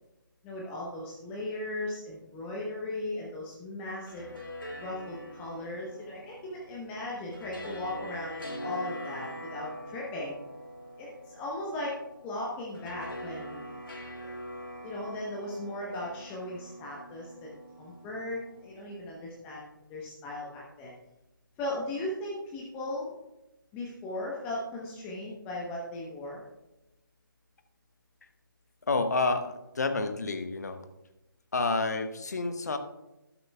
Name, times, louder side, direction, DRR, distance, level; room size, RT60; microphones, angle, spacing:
voice 1, 0.4-4.2 4.8-10.4 11.0-12.0 12.2-13.6 14.2-14.3 14.8-20.9 21.6-23.1 23.7-26.5, left 1 dB, 10° left, -4 dB, 1.0 m, -37 dB
sound 1, 3.9-19.1, equal, 70° left, 1.9 m, -44 dB
voice 2, 28.9-30.8 31.5-32.8, left 3 dB, 50° left, 8 dB, 1.0 m, -29 dB
12.0 x 12.0 x 2.3 m, 0.94 s
figure-of-eight pair, 150°, 12 cm